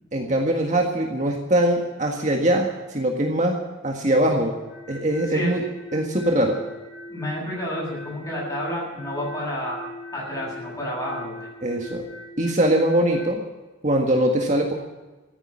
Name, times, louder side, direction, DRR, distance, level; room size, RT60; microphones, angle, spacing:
voice 1, 0.1-4.5 4.9-5.6 5.9-6.6 11.6-12.0 12.4-13.4 13.8-14.7, right 1 dB, 35° right, 1 dB, 1.7 m, -22 dB
sound 1, 4.6-13.3, left 2 dB, 50° left, 5.7 m, -40 dB
voice 2, 7.1-9.8 10.1-11.4, equal, 15° left, -4 dB, 7.4 m, -30 dB
14.5 x 9.7 x 9.7 m, 1.2 s
head